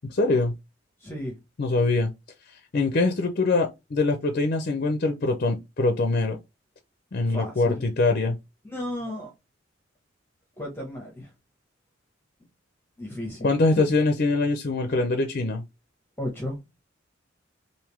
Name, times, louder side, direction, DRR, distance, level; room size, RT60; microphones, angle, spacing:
voice 1, 0.1-0.5 1.6-2.1 2.7-6.4 7.1-8.4 13.4-15.6, left 3 dB, 50° left, 0.5 m, -23 dB
voice 2, 1.0-1.4 7.3-7.8 8.6-9.3 10.6-11.3 13.0-13.9 16.2-16.6, left 1 dB, 10° left, 0.8 m, -34 dB
3.6 x 2.6 x 3.1 m
head